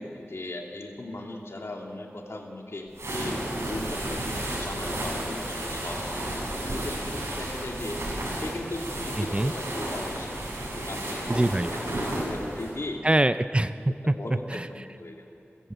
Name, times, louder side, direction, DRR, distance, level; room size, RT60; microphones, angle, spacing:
voice 1, 0.0-6.0 6.6-8.0 8.3-11.5 11.9-13.0 14.0-15.3, left 2 dB, 70° left, 1 dB, 2.9 m, -38 dB
sound 1, 2.9-12.7, right 1 dB, 80° right, 6.9 m, -32 dB
voice 2, 9.2-9.5 11.3-11.7 13.0-14.1 14.5-14.7, right 1 dB, 25° right, 12 dB, 0.6 m, -24 dB
29.0 x 15.5 x 8.0 m, 2.7 s
wide cardioid pair, 65°, 5 cm